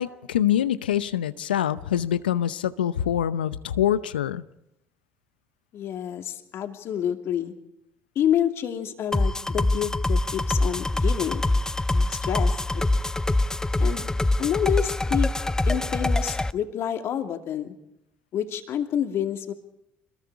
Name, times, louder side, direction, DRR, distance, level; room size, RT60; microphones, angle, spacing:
voice 1, 0.0-4.4, left 10 dB, 90° left, 14 dB, 0.7 m, -25 dB
voice 2, 5.7-7.5 8.1-11.4 11.9-12.8 13.8-14.0 14.4-15.3 15.7-17.7 18.3-19.5, left 10 dB, 55° left, 5 dB, 2.6 m, -28 dB
sound 1, 9.1-16.5, left 2 dB, 10° left, 0.8 m, -24 dB
26.0 x 21.5 x 4.8 m, 0.84 s
hypercardioid pair, 60°, 5 cm